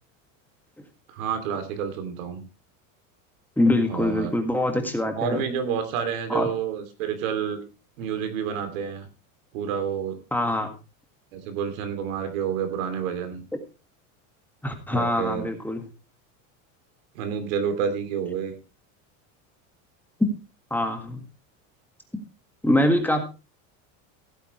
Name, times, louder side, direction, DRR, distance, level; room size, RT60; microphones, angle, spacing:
voice 1, 1.2-2.4 3.9-4.3 5.2-7.6 8.0-9.1 9.5-10.2 11.3-13.4 14.9-15.5 17.1-18.5, right 7 dB, 85° right, 7 dB, 2.9 m, -29 dB
voice 2, 3.6-5.4 6.3-6.5 10.3-10.7 14.6-15.8 20.2-20.3 20.7-21.2 22.6-23.2, left 1 dB, 5° left, 4 dB, 1.7 m, -24 dB
16.0 x 9.1 x 3.2 m, 0.30 s
supercardioid pair, 150°, 39 cm